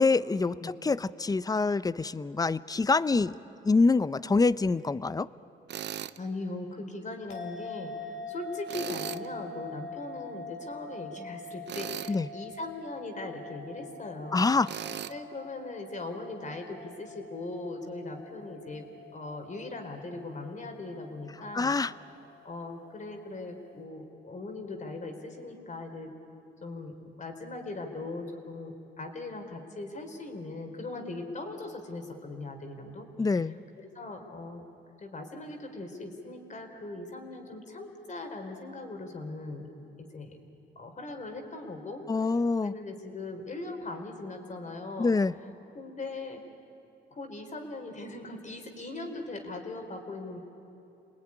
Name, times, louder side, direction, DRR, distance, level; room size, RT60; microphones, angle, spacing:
voice 1, 0.0-3.4 3.6-5.3 12.1-12.3 14.3-14.7 21.5-21.9 33.2-33.5 42.1-42.7 45.0-45.3, left 3 dB, 20° left, 17 dB, 0.6 m, -25 dB
Tools, 5.7-6.2 8.7-9.3 11.7-12.2 14.6-15.1, right 10 dB, 60° right, 0.7 m, -37 dB
voice 2, 6.2-14.5 15.1-21.7 22.4-26.1 26.6-34.6 35.0-39.7 40.0-40.4 40.8-45.5 45.7-46.4 47.1-50.4, left 2 dB, 40° left, 4 dB, 4.0 m, -40 dB
sound 1, 7.3-23.8, left 3 dB, 80° left, 3.6 m, -45 dB
28.5 x 20.0 x 9.9 m, 2.9 s
cardioid pair, 90°, 20 cm